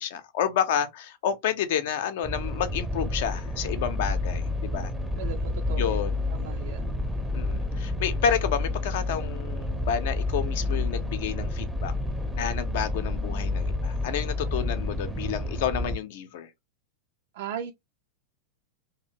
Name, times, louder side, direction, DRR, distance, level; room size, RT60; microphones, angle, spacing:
voice 1, 0.0-4.9 5.8-6.2 7.3-11.9 12.4-16.5, left 8 dB, 55° left, 0.5 m, -30 dB
sound 1, 2.2-15.9, left 2 dB, 5° right, 0.5 m, -29 dB
voice 2, 5.2-6.0 6.3-6.8 17.3-17.7, right 8 dB, 55° right, 0.3 m, -37 dB
2.7 x 2.4 x 2.6 m
figure-of-eight pair, 90°, 0 cm